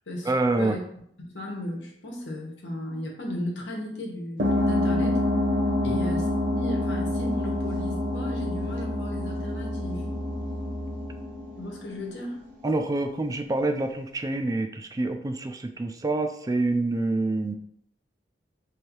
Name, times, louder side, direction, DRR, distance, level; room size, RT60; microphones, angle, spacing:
voice 1, 0.3-0.8 5.8-6.0 12.6-17.5, right 2 dB, 20° right, 7 dB, 0.3 m, -26 dB
voice 2, 1.2-5.2 5.8-6.3 6.5-10.1 11.6-12.4, left 1 dB, 90° left, -1 dB, 1.1 m, -35 dB
sound 1, 4.4-12.5, left 1 dB, 50° right, 0.9 m, -27 dB
3.3 x 2.7 x 4.4 m, 0.71 s
head